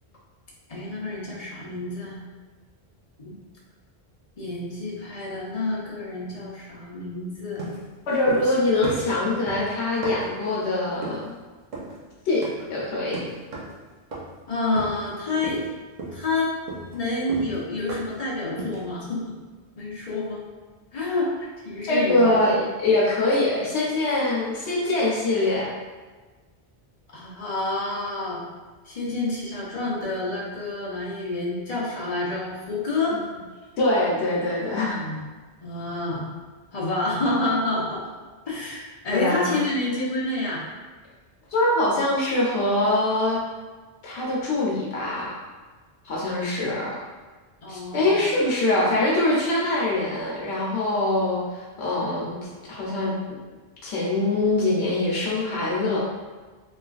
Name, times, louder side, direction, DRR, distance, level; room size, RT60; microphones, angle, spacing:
voice 1, 0.7-2.2 3.2-3.4 4.4-7.6 8.2-8.7 14.5-15.6 16.1-16.5 16.9-19.3 19.8-20.4 20.9-22.4 27.1-28.4 28.9-33.2 34.9-35.2 35.6-36.3 36.7-38.0 38.5-40.6 47.6-48.2, left 2 dB, 40° left, -6 dB, 0.7 m, -28 dB
sound 1, 7.6-8.6 8.8-10.4 11.0-11.3 11.7-12.0 12.4-12.7 13.1-13.8 14.1-14.4 14.8-15.1 15.4-15.7 16.0-18.2 18.6-18.9, right 2 dB, 50° right, 0.6 m, -35 dB
voice 2, 8.1-11.3 12.3-12.4 12.7-13.2 21.8-25.7 33.8-35.0 39.1-39.6 41.5-43.4 44.0-45.3 46.0-47.0 47.7-52.4 52.7-53.1 53.8-56.0, left 2 dB, 80° left, -5 dB, 0.9 m, -23 dB
3.2 x 2.3 x 2.3 m, 1.3 s
omnidirectional pair, 1.1 m